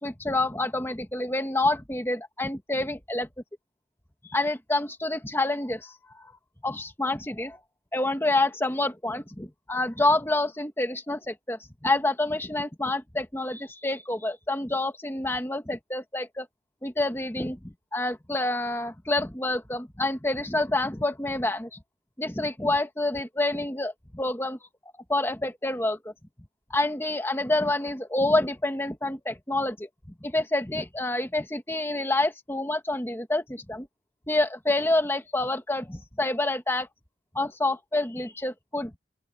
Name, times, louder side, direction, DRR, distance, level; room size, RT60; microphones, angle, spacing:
voice 1, 0.0-3.3 4.3-5.9 6.6-7.6 7.9-16.5 16.8-21.8 22.2-24.6 25.1-26.0 26.7-29.9 30.2-33.9 34.3-36.9 37.3-38.9, left 2 dB, 15° left, 1.5 m, -27 dB
open air
head